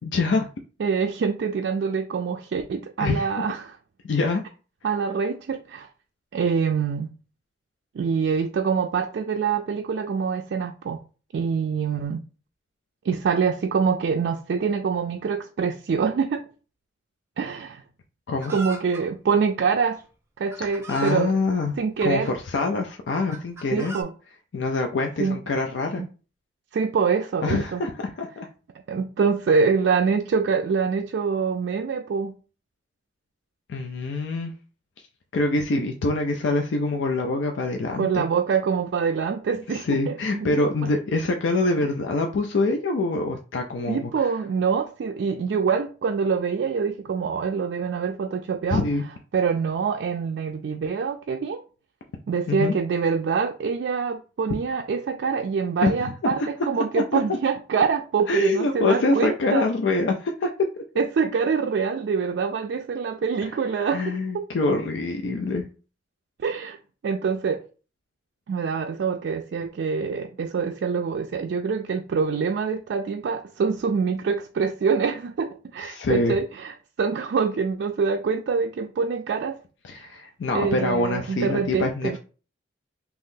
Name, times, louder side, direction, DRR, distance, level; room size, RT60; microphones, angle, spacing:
voice 1, 0.0-0.5 3.0-3.3 4.0-4.4 18.3-18.5 20.9-21.7 22.0-24.0 24.5-26.0 27.4-28.5 33.7-34.5 35.3-38.2 39.7-44.1 48.7-49.0 52.5-52.7 55.8-56.5 56.9-57.2 58.3-60.5 63.4-63.5 63.8-65.7 75.8-76.4 79.8-82.2, left 3 dB, 80° left, 0.4 m, -25 dB
voice 2, 0.8-3.8 4.8-5.9 6.3-7.1 7.9-11.0 11.3-12.2 13.0-16.4 17.4-17.8 18.5-20.0 20.4-21.4 21.8-22.3 23.7-24.1 25.2-25.4 26.0-26.1 26.7-27.8 28.9-32.3 38.0-40.9 43.9-48.8 49.3-51.6 52.3-59.7 61.0-64.5 66.4-66.8 67.0-67.6 68.5-79.6 80.5-82.2, right 5 dB, 65° right, 0.3 m, -25 dB
Chicken rooster, 18.4-19.1 20.0-20.1 20.5-21.2 22.0-22.6 23.3-24.0, right 2 dB, 15° right, 0.6 m, -38 dB
2.9 x 2.6 x 3.7 m
head